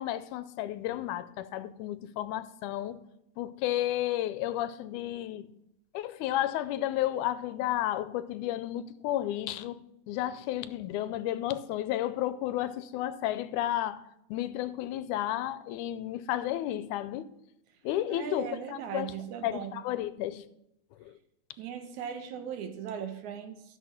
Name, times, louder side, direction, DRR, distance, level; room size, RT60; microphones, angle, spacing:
voice 1, 0.0-3.0 3.4-5.5 5.9-14.0 14.3-17.3 17.8-19.1 19.4-20.5 21.0-21.2, left 13 dB, 80° left, 2.0 m, -32 dB
voice 2, 18.1-19.7 21.6-23.6, right 8 dB, 75° right, 2.3 m, -38 dB
12.5 x 6.3 x 5.8 m
omnidirectional pair, 3.6 m